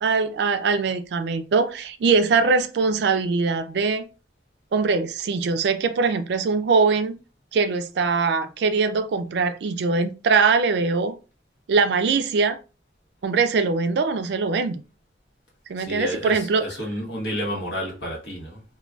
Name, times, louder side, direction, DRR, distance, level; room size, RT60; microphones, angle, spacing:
voice 1, 0.0-4.0 4.7-7.1 7.5-11.1 11.7-12.6 13.2-14.8 15.7-16.6, right 4 dB, 60° right, 0.3 m, -22 dB
voice 2, 15.8-18.6, equal, 65° left, 0.9 m, -31 dB
3.6 x 2.2 x 2.2 m
head